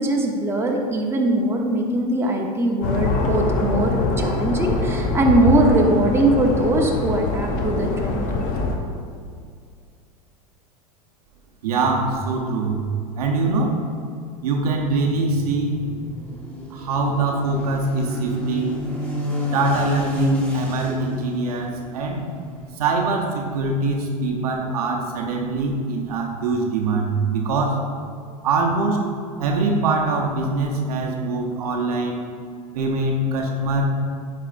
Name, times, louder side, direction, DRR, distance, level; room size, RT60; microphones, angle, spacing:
voice 1, 0.0-8.3, right 2 dB, 15° right, 0 dB, 0.9 m, -21 dB
BC walk signal plane, 2.8-8.8, left 3 dB, 50° left, 0.9 m, -23 dB
voice 2, 11.6-12.8 13.2-13.8 14.4-15.8 16.7-18.9 19.4-22.2 22.8-27.8 28.4-29.0 29.4-32.2 32.7-33.9, right 3 dB, 75° right, 1 dB, 0.9 m, -23 dB
sound 1, 15.3-22.7, equal, 10° left, 1.6 m, -29 dB
10.0 x 4.6 x 2.6 m, 2.2 s
hypercardioid pair, 95°, 19 cm